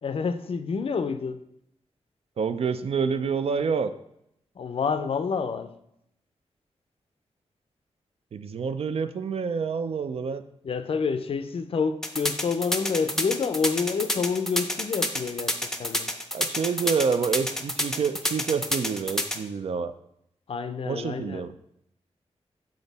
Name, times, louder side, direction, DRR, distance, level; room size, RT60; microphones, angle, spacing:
voice 1, 0.0-1.4 4.6-5.7 10.6-16.1 20.5-21.5, left 5 dB, 55° left, 10 dB, 0.4 m, -28 dB
voice 2, 2.4-3.9 8.3-10.4 16.3-19.9 20.8-21.5, right 5 dB, 60° right, 11 dB, 0.4 m, -27 dB
sound 1, 12.0-19.4, left 1 dB, 5° left, 0.5 m, -28 dB
7.2 x 3.8 x 4.1 m, 0.77 s
wide cardioid pair, 130°, 11 cm